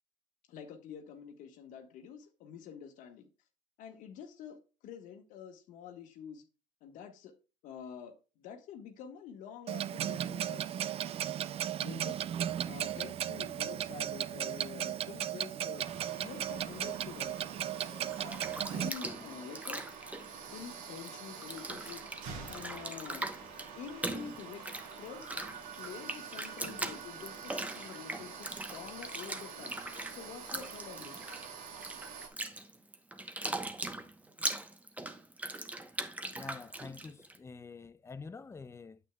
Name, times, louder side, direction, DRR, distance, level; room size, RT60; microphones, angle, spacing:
voice 1, 0.5-3.3 3.8-4.6 4.8-6.4 6.8-7.3 7.6-10.9 11.8-15.8 16.2-17.4 18.7-19.8 20.5-22.0 22.5-23.3 23.8-24.6 25.0-31.4, left 8 dB, 75° left, 1.4 m, -47 dB
Clock, 9.7-18.9, right 10 dB, 45° right, 0.4 m, -36 dB
sound 1, 15.8-32.3, right 6 dB, 75° right, 2.1 m, -47 dB
Bathtub (filling or washing), 18.1-21.1 21.4-37.4, right 2 dB, 10° right, 0.9 m, -40 dB
voice 2, 36.3-39.0, left 4 dB, 20° left, 0.5 m, -47 dB
8.9 x 8.2 x 2.3 m
cardioid pair, 110°, 14 cm